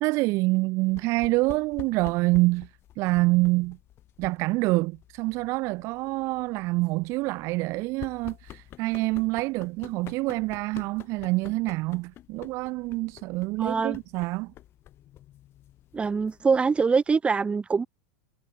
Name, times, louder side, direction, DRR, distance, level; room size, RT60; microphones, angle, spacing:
voice 1, 0.0-2.7 3.0-3.8 4.2-14.5, right 23 dB, 50° right, 1.4 m, -26 dB
sound 1, 0.9-17.0, left 13 dB, 40° left, 6.1 m, -49 dB
voice 2, 13.6-14.0 15.9-17.9, right 5 dB, 15° right, 2.0 m, -24 dB
hypercardioid pair, 100°, 6 cm